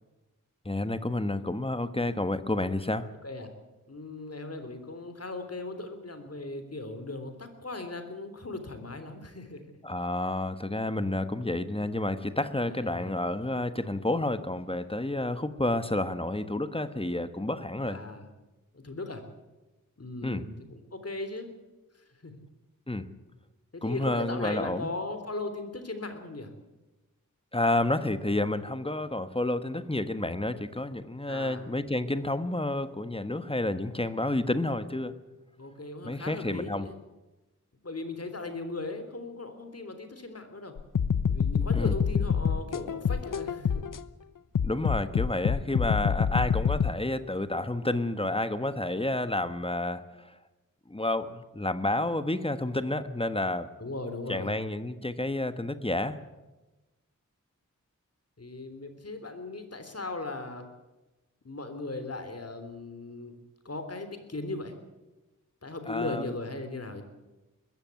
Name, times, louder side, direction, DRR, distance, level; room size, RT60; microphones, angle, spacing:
voice 1, 0.6-3.1 9.8-18.0 20.2-20.5 22.9-23.1 23.8-24.9 27.5-35.2 36.0-36.9 41.7-41.9 44.6-50.3 50.9-53.7 54.3-56.2 65.9-66.3, left 1 dB, 15° left, 11 dB, 1.3 m, -30 dB
voice 2, 3.9-9.6 12.7-13.1 17.9-18.3 18.7-19.2 20.0-21.5 22.2-22.4 23.7-26.5 31.3-31.6 35.6-37.0 37.8-40.7 41.3-43.8 53.8-54.6 58.4-60.6 61.4-63.3 63.6-64.7 65.6-67.0, left 2 dB, 50° left, 8 dB, 3.4 m, -38 dB
sound 1, 40.8-44.0 44.5-46.9, left 7 dB, 85° left, 0.8 m, -26 dB
20.5 x 15.0 x 9.5 m, 1.1 s
wide cardioid pair, 85°, 32 cm